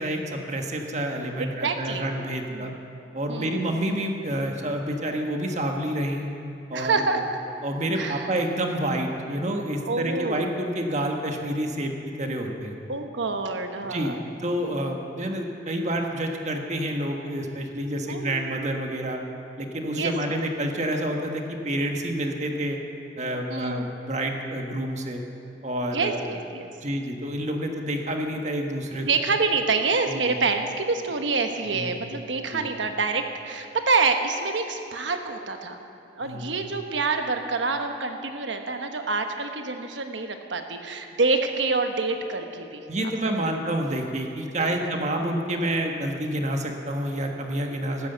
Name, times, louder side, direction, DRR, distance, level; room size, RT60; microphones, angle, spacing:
voice 1, 0.0-2.7 3.1-6.3 6.7-6.9 7.6-12.7 13.9-19.2 19.6-22.8 23.2-25.2 25.6-26.2 26.8-29.1 30.1-30.3 31.7-32.0 32.5-32.7 36.2-36.6 42.9-48.1, right 1 dB, 40° right, 3 dB, 1.4 m, -28 dB
voice 2, 1.4-2.1 2.5-2.7 3.3-3.6 6.7-7.4 7.9-8.3 9.9-10.5 12.9-14.2 18.1-18.8 20.0-20.1 23.5-23.9 25.9-26.7 29.1-35.8 36.1-42.9 43.3-43.6 44.6-44.9 46.7-46.8 47.7-48.1, right 4 dB, 85° right, 5 dB, 1.2 m, -27 dB
13.5 x 9.8 x 8.0 m, 2.6 s
head